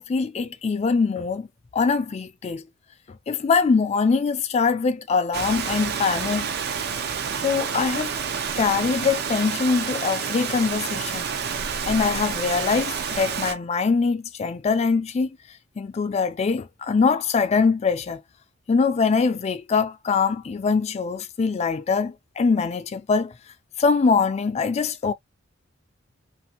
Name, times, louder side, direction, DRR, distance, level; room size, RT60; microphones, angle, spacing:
voice 1, 0.0-1.5 1.7-2.6 3.3-6.5 7.4-8.1 8.6-11.3 11.9-15.4 15.8-18.2 18.7-23.3 23.8-25.1, left 5 dB, 35° left, 0.3 m, -23 dB
Rain, 5.3-13.5, right 6 dB, 50° right, 0.5 m, -29 dB
2.6 x 2.6 x 2.7 m
head